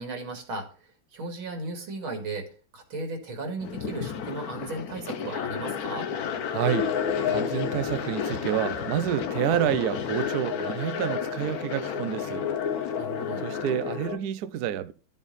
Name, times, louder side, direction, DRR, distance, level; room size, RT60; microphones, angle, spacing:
voice 1, 0.0-6.1 13.0-13.4, right 2 dB, 85° right, 3.2 m, -36 dB
sound 1, 3.6-14.1, left 7 dB, 55° left, 1.2 m, -34 dB
voice 2, 6.5-6.9 7.3-12.5 13.4-14.9, right 11 dB, 70° right, 1.0 m, -29 dB
sound 2, 6.6-14.2, left 7 dB, 85° left, 2.5 m, -32 dB
12.5 x 7.3 x 4.1 m
omnidirectional pair, 2.2 m